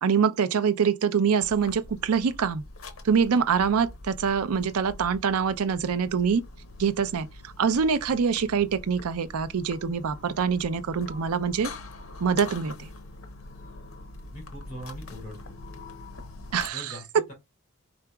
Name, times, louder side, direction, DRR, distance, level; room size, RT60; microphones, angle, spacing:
voice 1, 0.0-2.6 3.0-6.4 6.8-11.7 12.2-12.9 16.5-17.2, right 6 dB, 85° right, 0.5 m, -25 dB
sound 1, 1.4-16.7, left 2 dB, 65° left, 0.8 m, -44 dB
voice 2, 14.3-15.6 16.6-17.3, equal, 35° left, 3.3 m, -41 dB
4.8 x 3.8 x 2.2 m
head